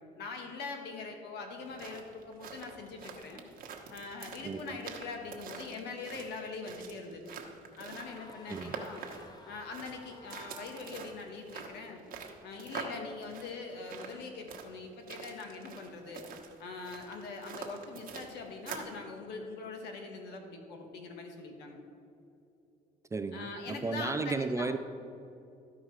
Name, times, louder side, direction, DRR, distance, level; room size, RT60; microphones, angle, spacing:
voice 1, 0.1-3.4 3.9-7.4 7.8-9.0 9.4-12.0 12.4-16.2 16.6-21.8 23.3-24.7, left 4 dB, 80° left, 3 dB, 1.5 m, -42 dB
sound 1, 1.5-19.0, right 6 dB, 60° right, 1.1 m, -46 dB
voice 2, 4.4-4.8 8.5-8.7 23.1-24.8, right 3 dB, 15° right, 10 dB, 0.4 m, -34 dB
sound 2, 7.8-11.2, left 2 dB, 25° left, 0.8 m, -54 dB
13.0 x 5.0 x 4.7 m, 2.7 s
cardioid pair, 110°, 17 cm